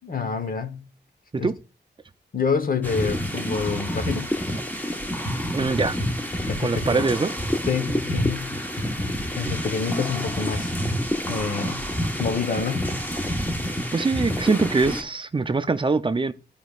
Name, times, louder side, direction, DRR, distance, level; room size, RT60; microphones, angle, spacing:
voice 1, 0.0-0.8 1.4-1.5 2.3-4.3 6.5-7.0 7.7-8.6 9.3-10.7 11.3-11.8 12.2-13.1, left 5 dB, 55° left, 1.0 m, -27 dB
sound 1, 2.8-15.0, equal, 10° left, 1.1 m, -28 dB
voice 2, 5.5-6.0 6.6-7.3 13.9-16.3, right 4 dB, 30° right, 0.5 m, -23 dB
14.0 x 5.2 x 2.4 m
wide cardioid pair, 145°, 18 cm